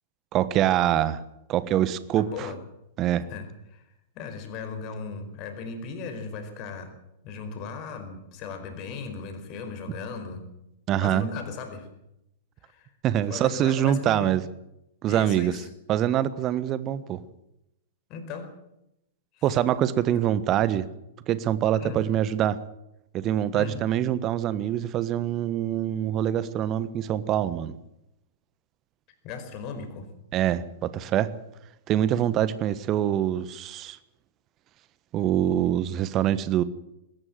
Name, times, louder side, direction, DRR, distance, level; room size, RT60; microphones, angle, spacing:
voice 1, 0.3-1.2 1.5-2.5 3.0-3.2 10.9-11.3 13.0-14.4 15.0-15.5 15.9-17.2 19.4-20.9 21.3-22.6 23.1-27.8 30.3-31.3 31.9-34.0 35.1-36.6, right 11 dB, 30° right, 16 dB, 1.3 m, -24 dB
voice 2, 2.2-2.6 3.3-3.8 4.1-6.9 7.2-10.5 11.0-11.9 12.6-12.9 13.3-14.4 15.1-15.7 18.1-18.5 19.3-19.6 20.1-20.2 21.7-22.0 23.5-23.8 29.2-30.1, left 5 dB, 35° left, 7 dB, 4.8 m, -37 dB
20.5 x 17.5 x 7.7 m, 0.85 s
figure-of-eight pair, 100°, 0 cm